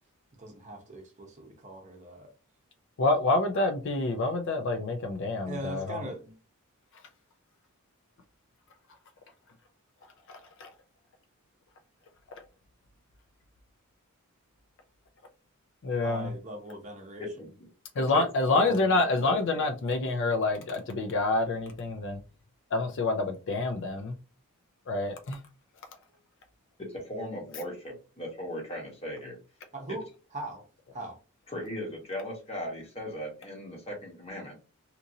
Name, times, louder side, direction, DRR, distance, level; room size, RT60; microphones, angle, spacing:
voice 1, 0.4-2.3 5.4-6.4 16.0-17.5 29.7-30.6 30.9-31.2, right 1 dB, 35° right, 0.7 m, -40 dB
voice 2, 3.0-6.0 10.3-10.7 12.4-12.5 15.8-16.3 18.0-22.2 22.7-24.2 24.9-25.4, left 2 dB, 55° left, 0.4 m, -27 dB
voice 3, 17.2-17.7 18.1-18.2 18.5-19.6 26.8-29.4 31.5-34.5, left 1 dB, 30° left, 1.0 m, -38 dB
2.9 x 2.5 x 2.6 m
head